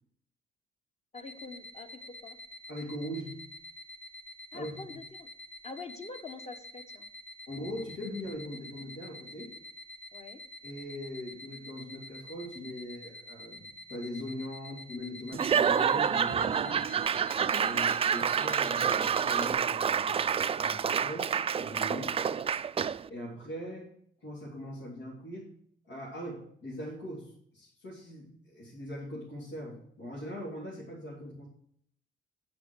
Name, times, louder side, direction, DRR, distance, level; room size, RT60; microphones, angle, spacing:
voice 1, 1.1-2.4 4.5-5.3 5.6-7.1 10.1-10.4 22.0-22.3, left 4 dB, 35° left, 7 dB, 1.2 m, -45 dB
sound 1, 1.2-19.5, left 1 dB, 70° left, 1.2 m, -48 dB
voice 2, 2.7-3.4 4.5-4.8 7.5-9.5 10.6-16.8 17.6-22.5 23.1-23.9 24.2-25.5 25.8-31.5, equal, 85° left, -6 dB, 3.3 m, -41 dB
Laughter / Applause / Crowd, 15.3-23.1, right 7 dB, 30° right, 0.3 m, -28 dB
9.3 x 6.0 x 6.4 m, 0.67 s
cardioid pair, 90°, 20 cm